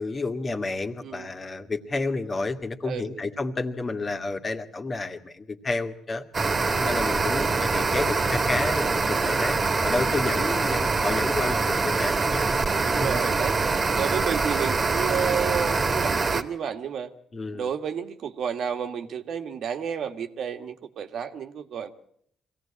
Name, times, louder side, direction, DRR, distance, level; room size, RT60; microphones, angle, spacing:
voice 1, 0.0-6.2 6.8-12.5 13.0-13.1 17.3-17.7, left 3 dB, 35° left, 6 dB, 2.0 m, -30 dB
voice 2, 2.8-3.2 10.7-10.9 12.7-13.6 13.9-17.1 17.5-21.9, right 8 dB, 70° right, 7 dB, 1.7 m, -31 dB
sound 1, 6.3-16.4, right 4 dB, 35° right, 1.8 m, -24 dB
23.5 x 17.0 x 8.7 m, 0.68 s
cardioid pair, 90°, 0 cm